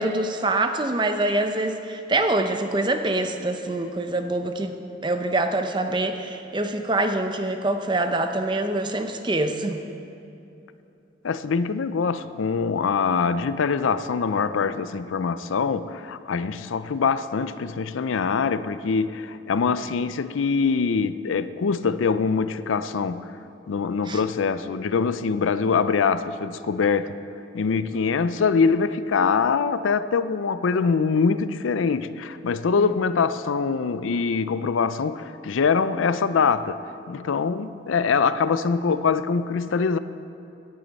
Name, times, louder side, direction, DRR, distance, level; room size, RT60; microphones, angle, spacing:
voice 1, 0.0-4.8 5.0-9.8 24.1-24.2 32.8-32.9, right 2 dB, 25° right, 0.6 m, -25 dB
voice 2, 11.2-23.3 23.7-27.2 27.5-40.0, left 5 dB, 90° left, 0.5 m, -23 dB
16.5 x 10.5 x 4.1 m
head